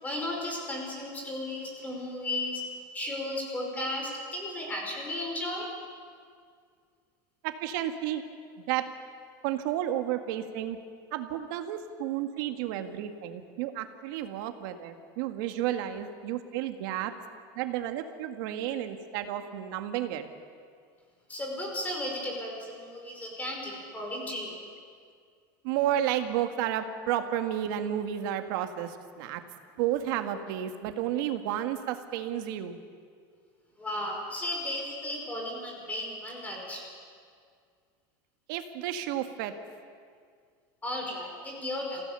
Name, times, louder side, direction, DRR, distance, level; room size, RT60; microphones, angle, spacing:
voice 1, 0.0-2.6 2.9-5.7 21.3-24.6 33.8-36.8 40.8-42.0, left 1 dB, 15° left, 0 dB, 5.2 m, -35 dB
voice 2, 7.4-8.2 8.7-8.9 9.4-10.8 11.1-17.1 17.6-20.2 25.6-29.4 29.8-32.8 38.5-39.5, right 11 dB, 65° right, 7 dB, 1.9 m, -31 dB
27.5 x 16.5 x 6.9 m, 2.1 s
supercardioid pair, 150°, 11 cm